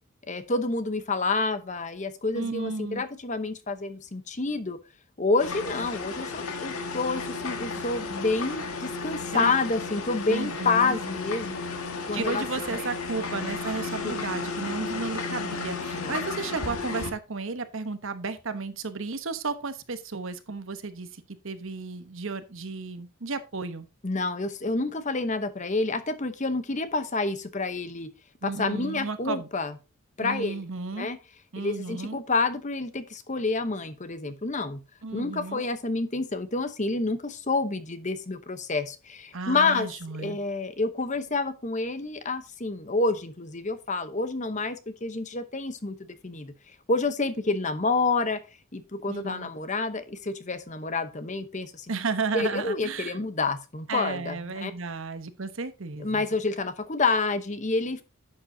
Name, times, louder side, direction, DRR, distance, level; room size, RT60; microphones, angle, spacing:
voice 1, 0.3-4.8 5.2-11.6 12.1-12.9 14.0-14.2 15.9-16.1 24.0-28.1 28.4-29.7 30.2-30.6 31.0-31.2 31.6-34.8 35.1-39.9 40.2-45.9 46.2-46.5 46.9-48.4 48.7-51.9 52.3-54.7 56.0-58.0, left 3 dB, 35° left, 0.9 m, -28 dB
voice 2, 2.3-3.0 9.3-9.5 10.3-11.0 12.1-23.9 28.4-29.5 30.2-31.1 31.5-32.2 35.0-35.6 39.3-40.4 49.1-49.5 51.9-53.2 53.9-56.2, right 4 dB, 60° right, 1.0 m, -33 dB
sound 1, 5.4-17.1, left 4 dB, 75° left, 1.8 m, -33 dB
11.0 x 7.7 x 2.8 m
head